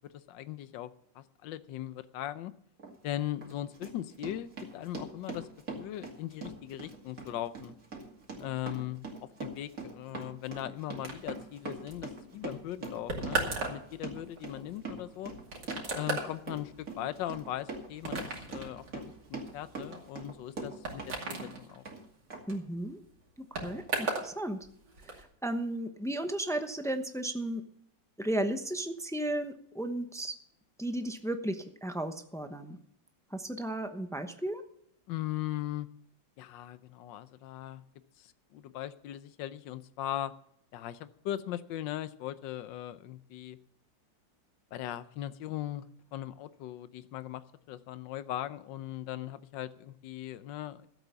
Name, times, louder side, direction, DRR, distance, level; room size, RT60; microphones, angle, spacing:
voice 1, 0.1-2.5 3.0-5.5 5.8-7.7 8.4-15.3 15.9-21.8 35.1-35.9 36.4-37.8 38.2-40.3 40.7-43.6 44.7-45.9 46.1-47.4 47.7-50.9, left 13 dB, 80° left, 14 dB, 1.4 m, -39 dB
Run, 2.8-2.9 3.4-21.1 21.4-22.0 22.3-22.4, right 3 dB, 45° right, 2.8 m, -42 dB
sound 1, 11.0-24.3 24.6-25.2, right 3 dB, 65° right, 3.2 m, -38 dB
voice 2, 22.5-23.0 23.4-24.7 25.1-27.6 28.2-30.4 30.8-32.8 33.3-34.6, right 1 dB, 5° left, 7 dB, 0.3 m, -34 dB
14.0 x 8.2 x 6.9 m, 0.70 s
omnidirectional pair, 2.0 m